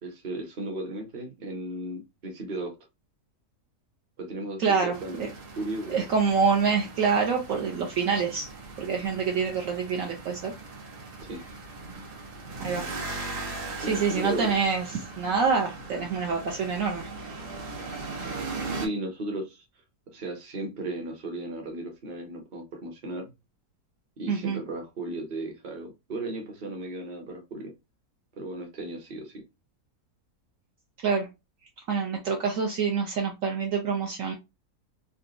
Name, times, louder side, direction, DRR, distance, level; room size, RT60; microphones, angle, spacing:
voice 1, 0.0-2.8 4.2-5.3 5.6-6.1 11.2-11.4 13.8-14.5 18.7-19.7 20.1-23.3 24.2-27.7 28.3-29.4, right 2 dB, 35° right, 0.9 m, -35 dB
voice 2, 4.6-5.3 5.9-8.5 8.8-10.5 12.6-12.9 13.9-14.9 15.2-17.3 24.3-24.6 31.0-31.3 31.9-34.3, right 5 dB, 65° right, 0.9 m, -26 dB
sound 1, 4.9-18.9, right 3 dB, 85° right, 1.6 m, -39 dB
3.9 x 2.3 x 2.5 m
omnidirectional pair, 1.6 m